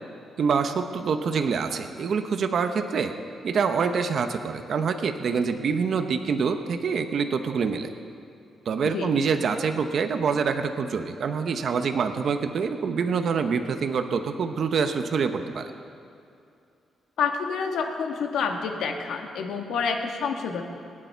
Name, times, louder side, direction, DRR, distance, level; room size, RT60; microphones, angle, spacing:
voice 1, 0.4-3.1 3.4-7.9 8.7-15.7, right 5 dB, 50° right, 7 dB, 0.8 m, -26 dB
voice 2, 17.2-20.6, left 5 dB, 80° left, 3 dB, 1.5 m, -28 dB
25.5 x 9.9 x 4.5 m, 2.6 s
wide cardioid pair, 170°, 0 cm